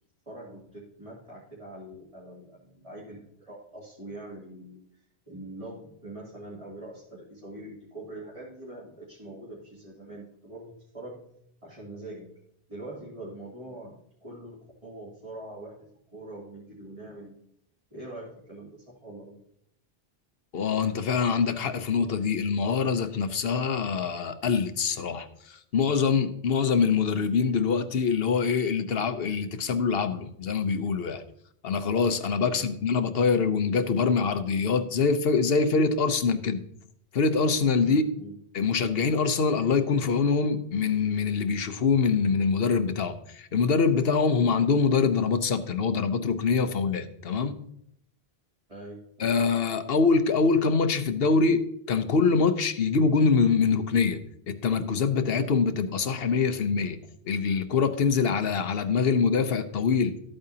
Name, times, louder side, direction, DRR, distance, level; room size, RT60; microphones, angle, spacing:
voice 1, 0.3-4.8 5.3-11.3 11.6-12.3 12.7-15.8 16.1-17.3 17.9-19.4 32.4-32.7 37.8-38.3 48.7-49.4, right 1 dB, 35° right, -7 dB, 2.7 m, -43 dB
voice 2, 20.5-31.2 31.6-36.6 37.1-38.0 38.5-47.6 49.2-54.2 54.5-57.0 57.2-60.2, left 5 dB, 70° left, 10 dB, 1.0 m, -24 dB
13.0 x 8.8 x 2.8 m, 0.72 s
omnidirectional pair, 1.0 m